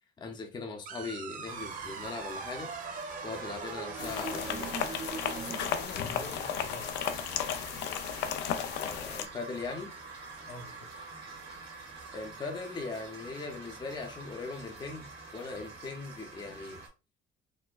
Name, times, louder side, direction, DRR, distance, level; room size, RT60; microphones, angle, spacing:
voice 1, 0.2-2.7 3.2-4.7 8.8-9.9 12.1-15.0 15.3-16.8, left 4 dB, 25° left, 0.6 m, -39 dB
sound 1, 0.9-5.9, right 5 dB, 50° right, 0.6 m, -41 dB
sound 2, 1.5-16.9, right 3 dB, 75° right, 1.5 m, -45 dB
sound 3, 4.0-9.3, left 9 dB, 90° left, 0.4 m, -34 dB
voice 2, 5.3-7.0 10.5-10.9, left 3 dB, 65° left, 0.8 m, -45 dB
4.2 x 2.2 x 2.3 m
cardioid pair, 110°, 17 cm